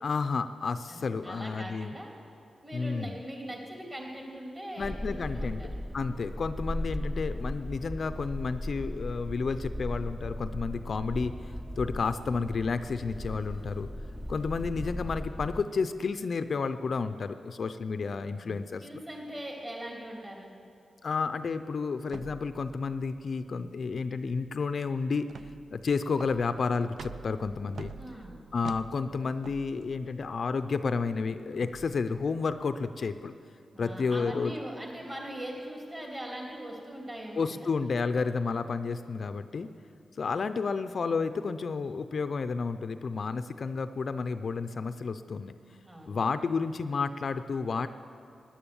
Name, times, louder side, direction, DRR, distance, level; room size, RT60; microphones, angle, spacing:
voice 1, 0.0-1.9 2.7-3.2 4.8-13.9 14.3-18.8 21.0-25.3 25.7-27.9 28.5-33.3 33.8-34.5 37.3-39.7 40.2-45.5 46.1-47.9, left 4 dB, 55° left, 10 dB, 0.4 m, -31 dB
voice 2, 0.9-2.1 2.6-5.7 18.3-20.5 27.8-28.4 33.7-37.7 45.8-46.3, right 1 dB, 25° right, -1 dB, 3.2 m, -41 dB
sound 1, 4.8-15.6, equal, 5° right, 0.5 m, -37 dB
sound 2, 22.1-33.3, right 5 dB, 75° right, 0.4 m, -49 dB
17.5 x 10.5 x 7.1 m, 2.5 s
wide cardioid pair, 115°, 0 cm